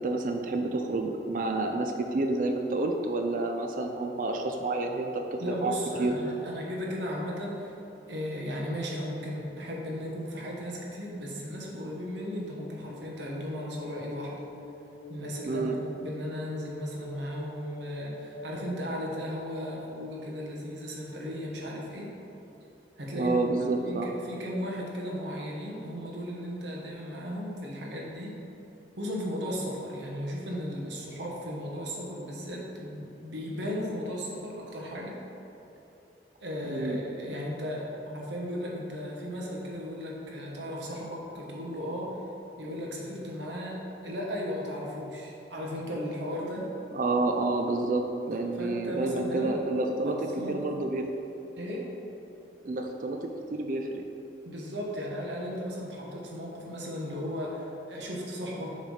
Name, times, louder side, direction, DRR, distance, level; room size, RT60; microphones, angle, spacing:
voice 1, 0.0-5.7 6.0-6.1 15.5-15.8 23.2-24.1 36.6-37.0 46.9-50.2 50.5-51.1 52.6-54.0, right 2 dB, 45° right, 4 dB, 0.4 m, -29 dB
voice 2, 5.4-7.7 8.1-14.4 15.1-22.1 23.0-23.5 23.8-28.4 29.0-35.2 36.4-42.2 42.6-46.7 48.3-49.6 50.0-50.7 51.6-51.8 54.4-58.8, equal, 75° right, -2 dB, 1.1 m, -36 dB
sound 1, 12.4-18.5, left 1 dB, 75° left, 0.7 m, -46 dB
7.0 x 3.3 x 5.5 m, 2.9 s
head